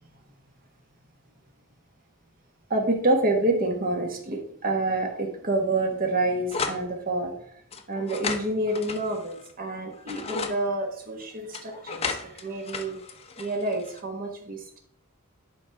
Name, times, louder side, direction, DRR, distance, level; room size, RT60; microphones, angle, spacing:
voice 1, 2.7-7.3 7.9-13.0 13.4-14.8, right 2 dB, 40° right, 3 dB, 1.4 m, -28 dB
sound 1, 6.5-6.8 7.7-9.5 9.9-10.6 11.5-14.0, left 4 dB, 25° left, 0.6 m, -34 dB
10.5 x 4.9 x 3.5 m, 0.66 s
head